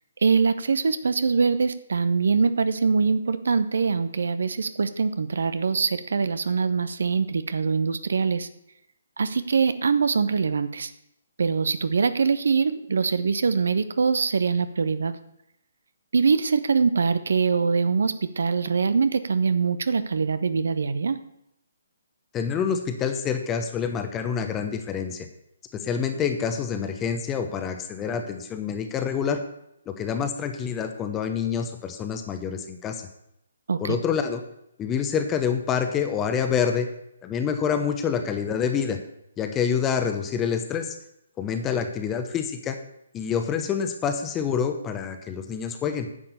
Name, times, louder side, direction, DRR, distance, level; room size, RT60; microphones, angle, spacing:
voice 1, 0.2-8.5 9.2-10.9 11.4-15.1 16.1-21.2 33.7-34.0, right 5 dB, 60° right, 12 dB, 0.9 m, -23 dB
voice 2, 22.3-25.3 25.7-29.4 29.9-33.1 33.8-34.4 34.8-36.9 37.2-39.0 39.4-41.0 41.4-42.8 43.1-46.1, left 7 dB, 15° left, 6 dB, 1.0 m, -27 dB
10.0 x 7.4 x 6.8 m, 0.79 s
figure-of-eight pair, 135°, 0 cm